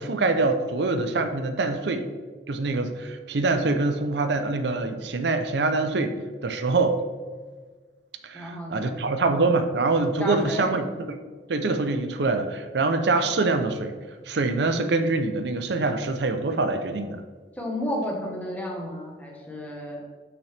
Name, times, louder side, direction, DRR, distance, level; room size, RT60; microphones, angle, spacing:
voice 1, 0.0-2.1 2.5-6.2 6.4-7.0 8.2-10.9 11.5-14.0 14.3-17.2, right 3 dB, 75° right, 8 dB, 0.5 m, -24 dB
voice 2, 8.3-9.0 10.2-10.7 17.6-20.0, left 1 dB, 10° left, -2 dB, 1.2 m, -32 dB
6.4 x 5.9 x 3.3 m, 1.5 s
head